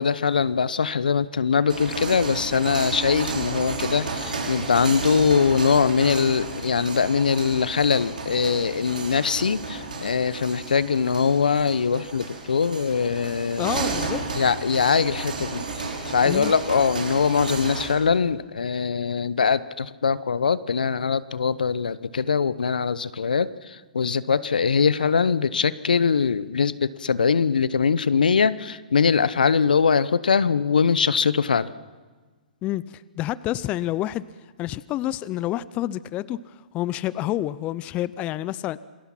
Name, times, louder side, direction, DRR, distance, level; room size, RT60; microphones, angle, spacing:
voice 1, 0.0-13.7 14.4-23.5 23.9-31.7, left 6 dB, 80° left, 17 dB, 0.9 m, -22 dB
sound 1, 1.6-18.0, right 3 dB, 80° right, 5.5 m, -32 dB
voice 2, 13.6-14.2 16.2-16.5 32.6-34.2 34.6-36.4 36.7-38.8, left 14 dB, 30° left, 18 dB, 0.6 m, -28 dB
27.5 x 20.5 x 5.9 m, 1.4 s
hypercardioid pair, 120°, 5 cm